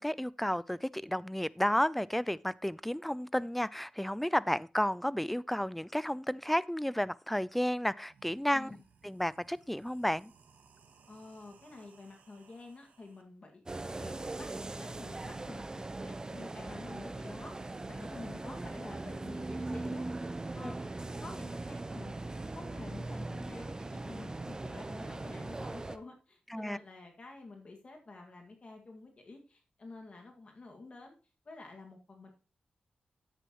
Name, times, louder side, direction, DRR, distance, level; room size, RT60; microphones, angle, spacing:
voice 1, 0.0-8.8 9.0-10.3 20.6-20.7 26.5-26.8, equal, 5° left, 0.4 m, -32 dB
sound 1, 7.5-7.6 8.0-13.2, right 5 dB, 85° right, 1.3 m, -63 dB
voice 2, 8.5-8.8 11.1-13.6 13.9-14.5 14.8-20.1 20.5-20.9 21.2-31.2 31.5-32.3, left 3 dB, 45° left, 1.9 m, -49 dB
sound 2, 13.7-26.0, right 2 dB, 25° right, 0.8 m, -40 dB
10.0 x 8.3 x 3.0 m
cardioid pair, 70°, 3 cm